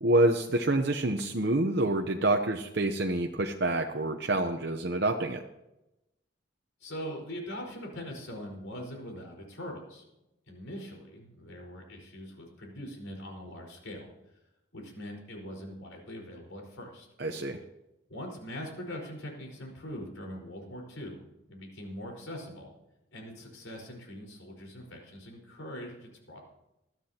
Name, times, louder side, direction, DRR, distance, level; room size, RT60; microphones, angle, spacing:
voice 1, 0.0-5.4 17.2-17.6, right 2 dB, 55° right, 4 dB, 0.8 m, -27 dB
voice 2, 6.8-10.0 10.5-14.1 14.7-17.1 18.1-21.2 21.5-22.7 23.1-26.4, equal, 80° left, 0 dB, 4.8 m, -42 dB
21.0 x 13.5 x 2.9 m, 0.92 s
head